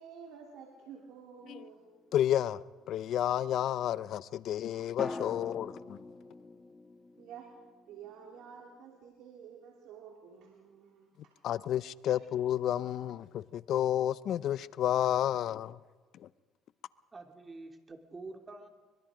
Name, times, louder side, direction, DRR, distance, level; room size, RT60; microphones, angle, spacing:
voice 1, 0.0-1.9 7.1-7.5 7.9-11.3 12.1-12.2, right 7 dB, 75° right, 0 dB, 3.0 m, -50 dB
sound 1, 1.4-2.6 5.0-9.0 9.2-9.3, left 3 dB, 25° left, 2.2 m, -45 dB
voice 2, 2.1-2.6 2.9-6.0 11.4-15.8 16.1-16.3, left 11 dB, 65° left, 18 dB, 0.6 m, -31 dB
voice 3, 17.1-18.7, right 3 dB, 30° right, 4 dB, 3.0 m, -47 dB
24.0 x 22.0 x 5.1 m, 1.3 s
supercardioid pair, 75°, 0 cm